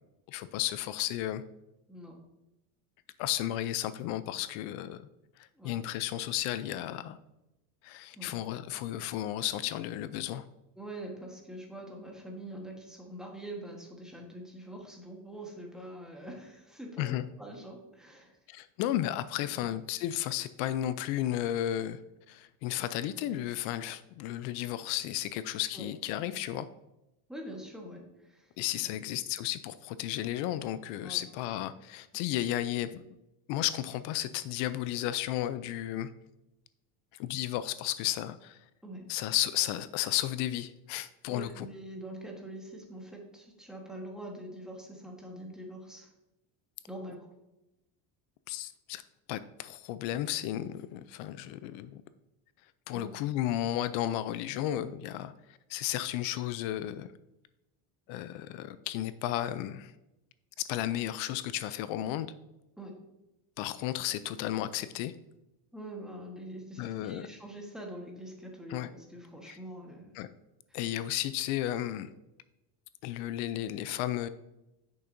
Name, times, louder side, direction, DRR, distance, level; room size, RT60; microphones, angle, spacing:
voice 1, 0.3-1.4 3.2-5.0 5.6-7.2 7.8-10.4 17.0-17.2 18.5-22.0 22.3-26.7 28.6-33.0 33.5-36.1 37.2-38.6 39.1-41.7 48.5-49.0 49.3-52.0 52.9-55.3 55.7-57.1 58.1-59.9 60.6-62.3 63.6-65.1 66.8-67.3 68.7-68.9 69.5-69.6 70.1-70.3 70.7-72.1 73.0-74.3, left 13 dB, 75° left, 14 dB, 0.6 m, -33 dB
voice 2, 10.7-18.4 25.7-25.9 27.3-28.5 28.8-29.0 31.0-31.2 38.8-39.1 41.3-46.1 46.9-47.3 52.9-53.1 62.8-63.0 65.7-70.1 70.7-70.8, right 1 dB, ahead, 0 dB, 1.3 m, -44 dB
8.6 x 6.6 x 2.6 m, 0.92 s
cardioid pair, 140°, 47 cm